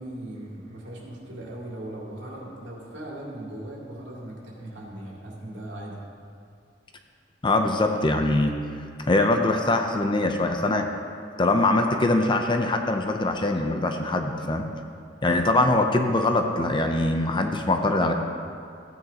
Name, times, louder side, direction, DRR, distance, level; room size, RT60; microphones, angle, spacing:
voice 1, 0.0-6.0, right 1 dB, 75° right, -4 dB, 2.5 m, -38 dB
voice 2, 7.4-8.5 9.0-10.8 11.4-14.7 15.2-18.1, left 2 dB, 25° left, 4 dB, 0.6 m, -22 dB
15.0 x 9.3 x 2.9 m, 2.4 s
head